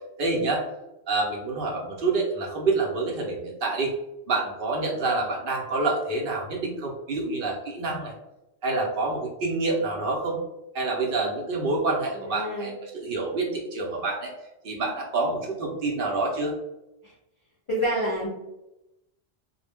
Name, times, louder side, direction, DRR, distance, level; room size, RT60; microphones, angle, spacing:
voice 1, 0.2-0.6 1.1-3.9 4.3-8.1 8.6-10.4 10.7-14.3 14.6-16.6, right 3 dB, 60° right, 0 dB, 0.7 m, -27 dB
voice 2, 12.2-12.7 17.0-17.1 17.7-18.3, equal, 45° left, -6 dB, 0.4 m, -28 dB
2.0 x 2.0 x 3.3 m, 0.92 s
omnidirectional pair, 1.2 m